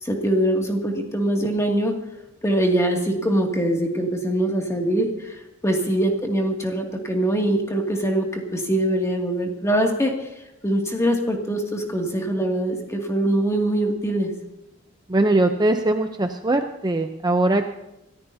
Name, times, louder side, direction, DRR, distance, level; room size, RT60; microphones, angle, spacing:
voice 1, 0.0-1.9 2.4-10.3 10.6-14.3, right 1 dB, 15° left, 1 dB, 2.3 m, -23 dB
voice 2, 15.1-17.7, right 2 dB, 20° right, 6 dB, 0.7 m, -21 dB
26.5 x 14.5 x 2.8 m, 0.92 s
head